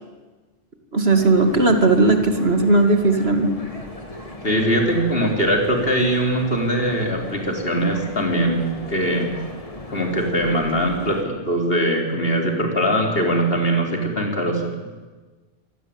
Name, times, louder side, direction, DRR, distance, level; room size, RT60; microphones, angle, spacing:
voice 1, 0.9-3.5, right 2 dB, 55° right, 5 dB, 2.6 m, -17 dB
sound 1, 1.1-11.2, left 1 dB, 30° left, 2.7 m, -37 dB
voice 2, 4.4-9.3 9.9-14.9, right 1 dB, 50° left, 2 dB, 4.5 m, -21 dB
26.0 x 19.0 x 8.9 m, 1.3 s
omnidirectional pair, 1.2 m